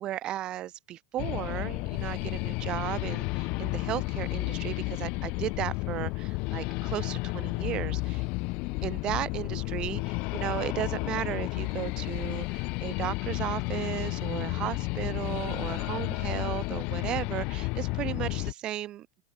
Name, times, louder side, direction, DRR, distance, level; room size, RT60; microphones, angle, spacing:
voice 1, 0.0-8.2 8.8-19.1, right 13 dB, 35° right, 3.4 m, -35 dB
sound 1, 1.2-18.5, left 26 dB, 50° left, 0.6 m, -32 dB
open air
hypercardioid pair, 120°, 3 cm